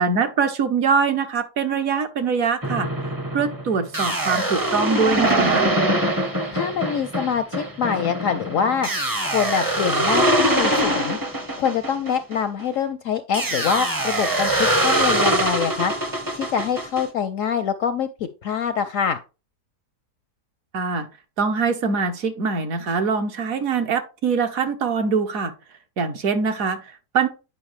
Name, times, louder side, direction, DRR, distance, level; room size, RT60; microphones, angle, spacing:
voice 1, 0.0-2.9 3.3-5.7 20.7-21.1 21.4-25.5 26.0-27.3, right 5 dB, 60° right, 1.2 m, -23 dB
sound 1, 2.6-12.7 13.3-17.0, right 1 dB, 20° right, 0.6 m, -23 dB
voice 2, 6.5-8.9 9.2-11.2 11.6-15.9 16.3-19.2, left 7 dB, 70° left, 0.8 m, -25 dB
9.4 x 5.3 x 3.1 m
omnidirectional pair, 1.8 m